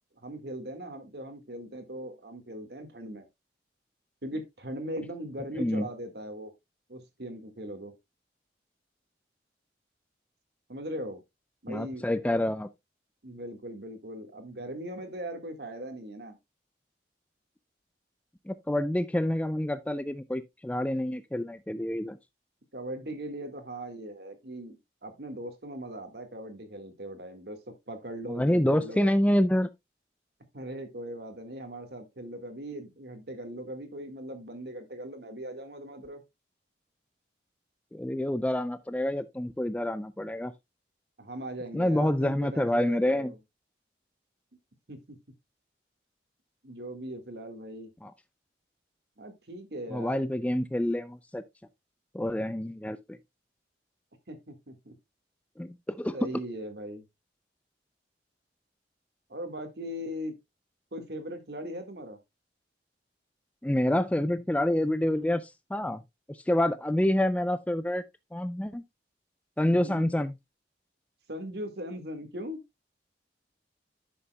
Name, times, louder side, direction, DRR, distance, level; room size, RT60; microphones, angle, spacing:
voice 1, 0.2-3.3 4.2-6.5 6.9-7.9 10.7-11.2 11.6-12.4 13.2-16.4 22.7-24.8 25.0-29.2 30.5-36.2 41.2-43.4 44.9-45.2 46.6-47.9 49.2-50.2 54.3-54.9 56.1-57.0 59.3-60.4 60.9-62.2 69.6-70.1 71.3-72.6, right 1 dB, 60° right, 1.7 m, -39 dB
voice 2, 11.7-12.7 18.5-22.2 28.3-29.7 37.9-40.5 41.7-43.3 48.0-48.1 49.9-51.4 52.1-53.2 55.6-56.3 63.6-66.0 66.3-68.0 68.3-68.8 69.6-70.4, left 1 dB, 10° left, 0.4 m, -27 dB
10.5 x 7.0 x 2.2 m
head